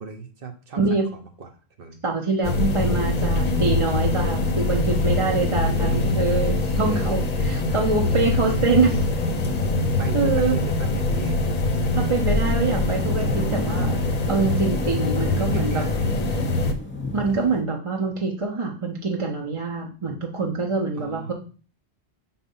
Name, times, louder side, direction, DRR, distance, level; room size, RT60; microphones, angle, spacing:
voice 1, 0.0-1.5 1.8-2.0 5.4-6.1 6.8-7.2 7.7-7.8 8.4-8.5 10.0-11.4 15.1-16.3 21.0-21.3, right 4 dB, 60° right, 5 dB, 1.0 m, -37 dB
voice 2, 0.8-1.1 2.0-9.0 10.1-10.6 11.9-15.8 16.3-16.4 17.1-21.3, right 4 dB, 35° right, 0 dB, 0.8 m, -25 dB
sound 1, 2.4-16.7, left 2 dB, 45° left, 0.8 m, -23 dB
sound 2, 9.3-17.6, left 1 dB, 10° left, 0.8 m, -38 dB
5.3 x 4.3 x 5.4 m, 0.38 s
omnidirectional pair, 1.1 m